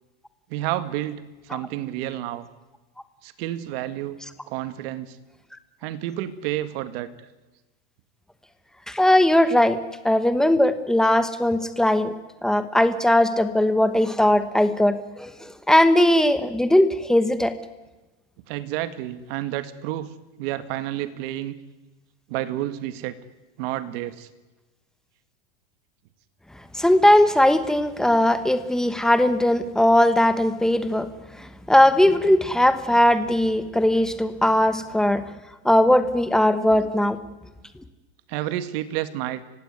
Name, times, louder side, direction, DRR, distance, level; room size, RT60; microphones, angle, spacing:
voice 1, 0.5-2.5 3.2-4.2 4.5-5.2 5.8-7.1 18.5-20.1 20.4-21.6 22.3-23.2 23.6-24.3 38.3-39.4, right 13 dB, 55° right, 12 dB, 2.0 m, -30 dB
voice 2, 8.9-9.8 10.0-12.1 12.4-17.5 26.7-31.1 31.4-35.2 35.6-37.2, left 1 dB, ahead, 11 dB, 1.1 m, -19 dB
29.5 x 16.5 x 9.6 m, 1.1 s
supercardioid pair, 155°, 34 cm